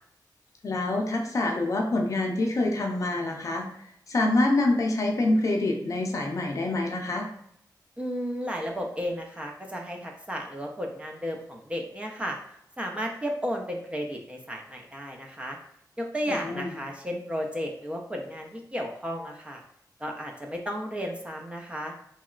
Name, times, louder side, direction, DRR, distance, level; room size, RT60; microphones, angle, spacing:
voice 1, 0.6-3.7 4.1-7.3 16.3-16.8, left 2 dB, 45° left, 1 dB, 0.5 m, -26 dB
voice 2, 8.0-12.4 12.8-15.6 16.0-19.6 20.0-21.9, equal, 15° right, 0 dB, 0.3 m, -33 dB
3.0 x 2.8 x 2.4 m, 0.73 s
wide cardioid pair, 180°, 8 cm